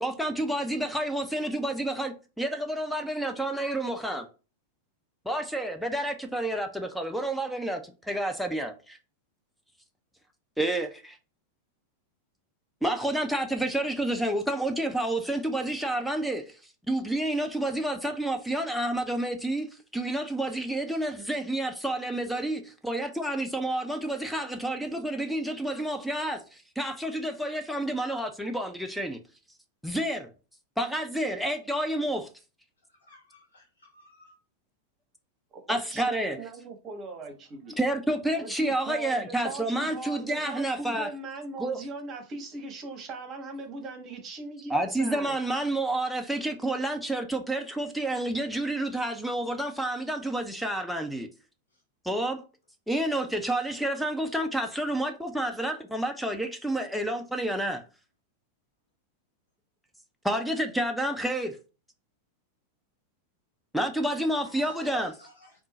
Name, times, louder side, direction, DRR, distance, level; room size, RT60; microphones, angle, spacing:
voice 1, 0.0-4.3 5.3-9.0 10.6-11.2 12.8-16.6 16.9-19.7 19.9-29.2 29.8-30.3 30.8-32.3 35.7-36.4 37.8-41.1 41.6-41.8 44.7-51.3 52.0-52.4 52.9-57.8 60.2-61.6 63.7-65.1, right 1 dB, ahead, 0.5 m, -29 dB
voice 2, 33.1-34.3 64.4-65.5, left 3 dB, 70° left, 0.9 m, -47 dB
voice 3, 35.7-37.8 38.3-45.3, right 3 dB, 30° right, 1.0 m, -39 dB
3.7 x 2.4 x 4.0 m
figure-of-eight pair, 90°, 0 cm